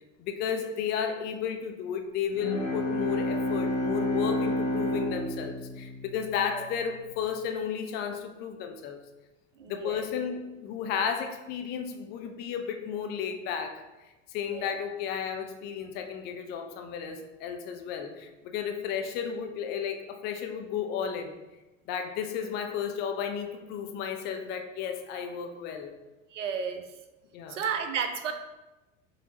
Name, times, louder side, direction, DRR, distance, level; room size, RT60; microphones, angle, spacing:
voice 1, 0.2-9.0 9.7-13.8 14.3-21.4 21.9-25.9 27.3-27.6, left 7 dB, 30° left, 6 dB, 0.4 m, -33 dB
Bowed string instrument, 2.3-6.8, left 1 dB, 85° left, 0.8 m, -30 dB
voice 2, 9.6-10.1 14.5-14.8 26.3-26.8 27.5-28.3, right 6 dB, 75° right, 7 dB, 0.5 m, -32 dB
5.0 x 2.7 x 2.9 m, 1.1 s
figure-of-eight pair, 75°, 37 cm